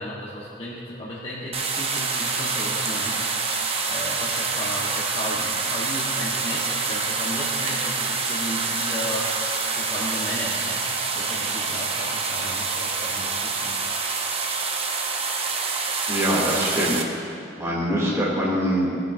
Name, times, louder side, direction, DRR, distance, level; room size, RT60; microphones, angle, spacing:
voice 1, 0.0-3.3 3.8-13.8, equal, 30° left, -7 dB, 1.2 m, -34 dB
sound 1, 1.5-17.0, right 4 dB, 35° right, 0.8 m, -26 dB
voice 2, 16.1-17.0 17.6-19.0, equal, 15° right, -6 dB, 2.5 m, -23 dB
17.0 x 9.0 x 2.6 m, 2.7 s
head